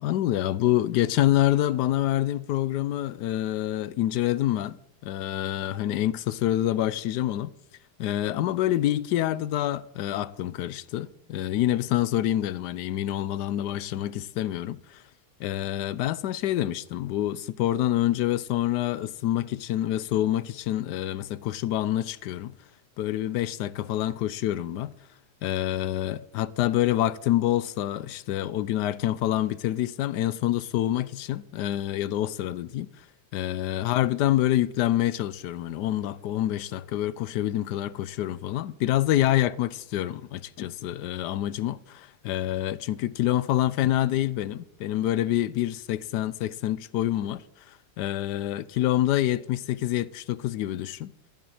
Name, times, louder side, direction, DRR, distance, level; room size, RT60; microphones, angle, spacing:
voice 1, 0.0-4.8 5.0-7.5 8.0-15.0 15.4-22.6 23.0-24.9 25.4-32.9 33.3-51.1, left 13 dB, 85° left, 1.2 m, -27 dB
14.5 x 10.5 x 4.9 m
omnidirectional pair, 1.8 m